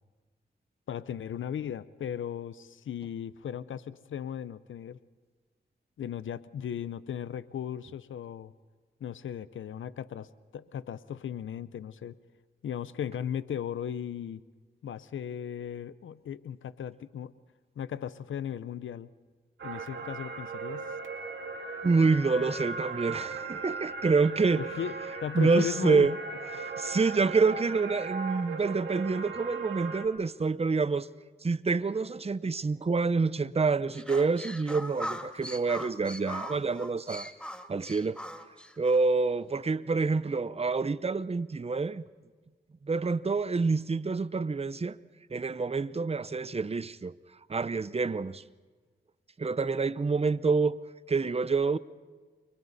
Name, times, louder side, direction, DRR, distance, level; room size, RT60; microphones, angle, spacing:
voice 1, 0.9-5.0 6.0-8.5 9.0-12.2 12.6-14.4 14.8-17.3 17.8-19.1 19.6-20.9 24.6-24.9 25.2-26.1 26.5-26.6, left 9 dB, 90° left, 0.7 m, -36 dB
sound 1, 19.6-30.1, right 4 dB, 80° right, 2.2 m, -38 dB
voice 2, 21.8-24.6 25.3-26.1 26.5-31.1 31.4-37.3 37.7-38.2 38.8-42.0 42.8-45.0 45.3-47.1 47.5-48.4 49.4-50.8 51.1-51.8, right 4 dB, 30° right, 0.7 m, -27 dB
sound 2, 33.9-39.0, equal, 5° left, 1.7 m, -40 dB
30.0 x 24.0 x 4.1 m
cardioid pair, 45°, 20 cm